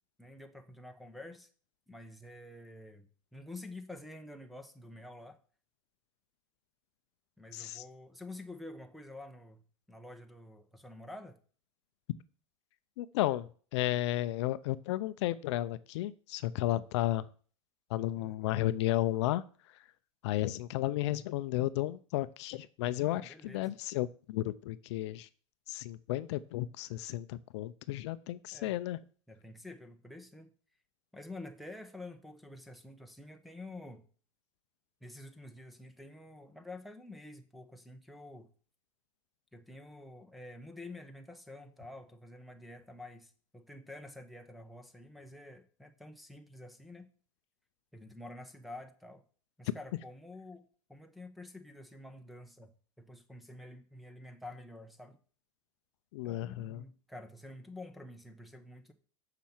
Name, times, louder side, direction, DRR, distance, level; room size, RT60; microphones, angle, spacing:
voice 1, 0.2-1.5 1.9-5.4 7.4-9.6 9.9-11.4 18.2-18.5 23.0-23.7 28.5-28.8 29.3-30.5 31.1-34.0 35.0-38.5 39.5-47.1 47.9-49.2 49.6-50.6 50.9-52.7 53.0-55.2 56.2-58.9, left 2 dB, ahead, 3 dB, 1.0 m, -49 dB
voice 2, 7.5-7.8 13.0-17.3 17.9-19.8 20.2-25.3 25.7-29.0 56.1-56.8, left 15 dB, 60° left, 15 dB, 0.6 m, -33 dB
7.4 x 6.0 x 7.3 m, 0.42 s
supercardioid pair, 155°, 16 cm